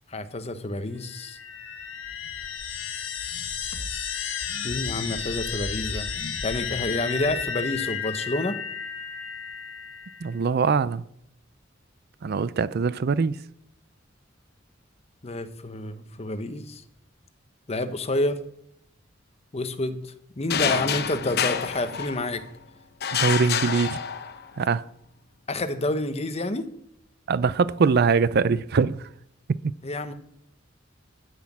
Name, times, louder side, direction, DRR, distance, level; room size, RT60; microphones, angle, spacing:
voice 1, 0.1-1.4 4.6-6.1 6.4-8.6 15.2-16.8 17.7-18.4 19.5-22.4 25.5-26.7 29.8-30.1, left 2 dB, 35° left, 1.0 m, -29 dB
sound 1, 1.0-10.3, left 6 dB, 85° left, 1.8 m, -33 dB
voice 2, 10.2-11.0 12.2-13.4 23.1-24.0 24.6-24.8 27.3-29.1 29.6-29.7, right 5 dB, 55° right, 0.4 m, -22 dB
sound 2, 20.5-22.5 23.0-24.6, left 8 dB, 55° left, 0.9 m, -27 dB
12.5 x 6.1 x 8.6 m
head